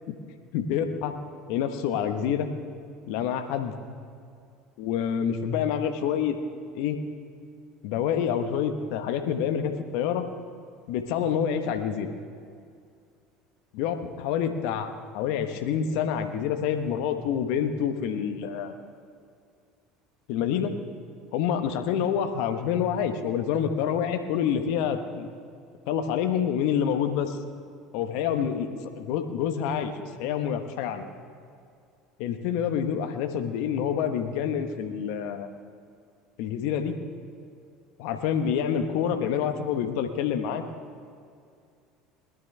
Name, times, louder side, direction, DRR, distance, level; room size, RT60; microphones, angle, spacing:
voice 1, 0.5-1.1 1.5-2.5 3.1-3.8 4.8-6.3 6.7-7.0 7.8-10.2 10.9-12.1 13.7-18.7 20.3-20.7 21.3-25.3 25.9-27.4 27.9-28.7 29.0-31.1 32.2-35.5 36.4-37.0 38.0-40.6, left 8 dB, 65° left, 8 dB, 1.1 m, -27 dB
21.0 x 12.5 x 3.3 m, 2.3 s
hypercardioid pair, 70°, 0 cm